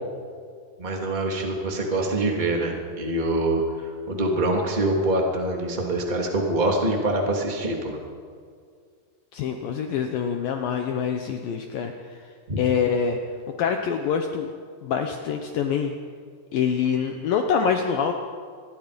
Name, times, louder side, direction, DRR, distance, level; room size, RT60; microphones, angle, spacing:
voice 1, 0.8-8.0 12.5-12.6, right 1 dB, 15° right, 1 dB, 2.4 m, -25 dB
voice 2, 9.3-12.2 12.6-13.2 13.6-14.5 14.8-15.9 16.5-18.1, left 7 dB, 70° left, 4 dB, 2.5 m, -25 dB
26.5 x 21.5 x 5.2 m, 2.1 s
omnidirectional pair, 4.8 m